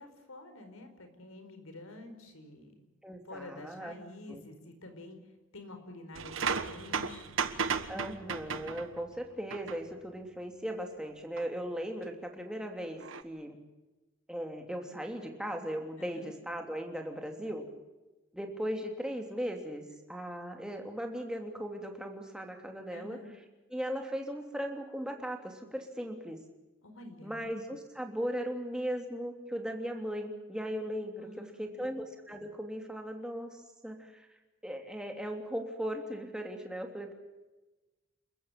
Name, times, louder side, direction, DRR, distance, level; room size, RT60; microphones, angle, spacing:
voice 1, 0.0-2.7 3.2-5.2 5.5-7.4 16.0-16.3 22.9-23.3 26.8-27.4 31.2-31.9, left 2 dB, 85° left, 7 dB, 4.8 m, -48 dB
voice 2, 3.0-3.9 4.3-4.4 7.9-13.6 14.3-17.7 18.3-19.8 20.1-23.2 23.7-26.4 27.2-34.3 34.6-37.1, equal, 5° right, 3 dB, 3.0 m, -38 dB
sound 1, 6.1-9.1 9.5-9.8 11.4-11.5 13.0-13.2, right 5 dB, 70° right, 1.4 m, -34 dB
29.0 x 14.5 x 8.8 m, 1.1 s
head